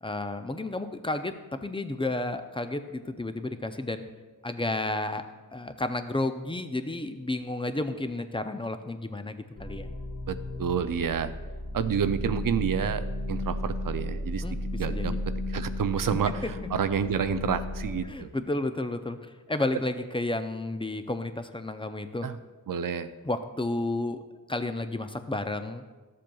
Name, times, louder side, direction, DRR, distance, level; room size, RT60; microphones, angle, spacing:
voice 1, 0.0-4.1 4.4-5.2 5.5-9.9 14.4-14.6 14.9-15.2 16.4-16.5 18.0-22.3 23.2-24.2 24.5-25.8, left 2 dB, 15° left, 8 dB, 0.5 m, -32 dB
sound 1, 9.6-18.0, left 1 dB, 90° left, 1.6 m, -34 dB
voice 2, 10.3-11.3 11.7-14.4 14.8-18.3 22.2-22.4 22.7-23.1, right 7 dB, 60° right, 11 dB, 0.5 m, -29 dB
13.0 x 7.5 x 2.3 m, 1.3 s
wide cardioid pair, 80°, 37 cm